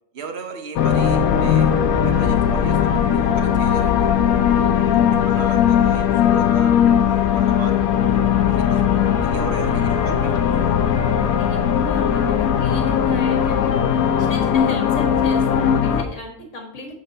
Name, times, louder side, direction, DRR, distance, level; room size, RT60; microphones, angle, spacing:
voice 1, 0.1-1.7 2.0-4.4 4.9-8.0 8.4-10.8, right 5 dB, 55° right, 6 dB, 1.1 m, -37 dB
sound 1, 0.8-16.0, left 8 dB, 85° left, 1.1 m, -18 dB
voice 2, 4.6-5.3 9.7-9.9 11.3-16.9, left 2 dB, 60° left, 2 dB, 1.9 m, -35 dB
7.1 x 4.3 x 4.0 m, 0.68 s
omnidirectional pair, 1.4 m